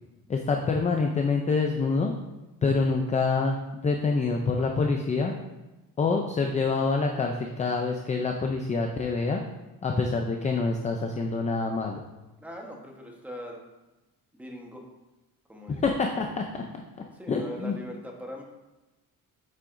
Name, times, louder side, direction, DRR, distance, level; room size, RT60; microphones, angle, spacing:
voice 1, 0.3-2.1 2.6-5.3 6.0-9.4 9.8-12.0 15.7-16.6 17.3-17.8, left 4 dB, 20° left, 3 dB, 0.5 m, -26 dB
voice 2, 12.4-13.6 14.3-14.8 15.5-15.8 17.1-18.4, equal, 5° right, 0 dB, 1.1 m, -41 dB
8.4 x 7.5 x 2.6 m, 1.1 s
cardioid pair, 150°, 37 cm